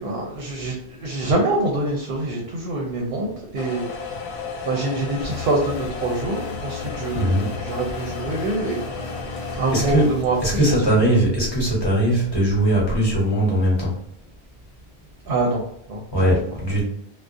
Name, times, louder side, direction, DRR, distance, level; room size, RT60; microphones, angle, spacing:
voice 1, 0.0-3.9 4.6-8.8 9.6-10.6 10.9-11.2 15.3-16.3, right 2 dB, 65° right, 0 dB, 0.7 m, -25 dB
sound 1, 3.6-10.1, left 5 dB, 80° left, 0.8 m, -34 dB
sound 2, 5.2-10.6, left 4 dB, 45° left, 0.6 m, -35 dB
voice 2, 7.1-7.5 9.7-10.1 10.4-13.9 16.1-16.9, right 1 dB, 25° left, -5 dB, 0.9 m, -20 dB
2.3 x 2.0 x 2.6 m, 0.73 s
omnidirectional pair, 1.1 m